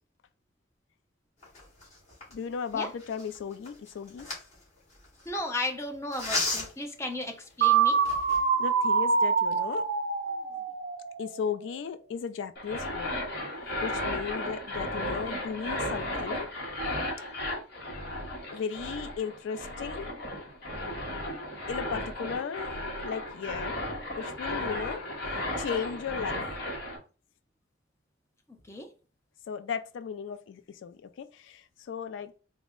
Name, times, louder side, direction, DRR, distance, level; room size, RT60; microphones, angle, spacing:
sound 1, 1.4-5.4 6.1-6.9 7.5-7.6 7.9-8.5, left 2 dB, 35° left, 1.7 m, -35 dB
voice 1, 2.3-4.3 8.6-9.8 10.5-10.6 11.2-13.1 13.8-16.5 18.5-20.1 21.7-23.8 24.2-25.0 25.6-26.4 29.5-32.3, left 6 dB, 80° left, 0.3 m, -36 dB
voice 2, 5.3-8.0 28.7-28.9, left 2 dB, 15° left, 0.7 m, -34 dB
sound 2, 7.6-11.5, right 6 dB, 55° right, 0.5 m, -25 dB
sound 3, 12.6-27.0, left 1 dB, 60° left, 1.1 m, -35 dB
4.1 x 2.1 x 3.6 m
head